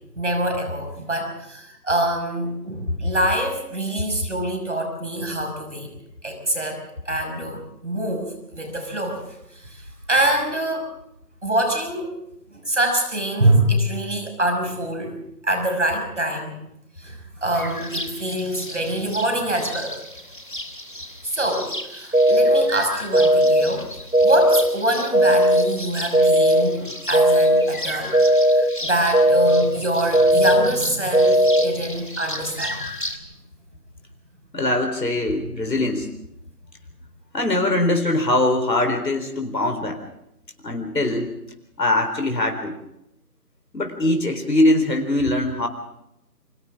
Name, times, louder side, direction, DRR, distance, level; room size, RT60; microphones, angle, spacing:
voice 1, 0.2-5.9 6.2-9.2 9.5-10.9 11.4-12.1 12.5-16.6 17.0-20.0 21.2-23.9 24.2-28.2 28.5-32.8, right 1 dB, 45° right, 4 dB, 6.1 m, -25 dB
sound 1, 17.5-33.2, left 1 dB, 30° left, 1.7 m, -35 dB
sound 2, 22.1-22.6 23.1-23.6 24.1-24.6 25.1-25.6 26.1-26.6 27.1-27.6 28.1-28.6 29.1-29.6 30.1-30.6 31.1-31.6, right 1 dB, 65° right, 2.7 m, -16 dB
voice 2, 34.5-36.1 37.3-40.0 40.6-41.3 41.8-42.7 43.7-45.7, left 1 dB, 85° left, 4 dB, 4.2 m, -22 dB
30.0 x 24.5 x 3.7 m, 0.81 s
figure-of-eight pair, 175°, 48 cm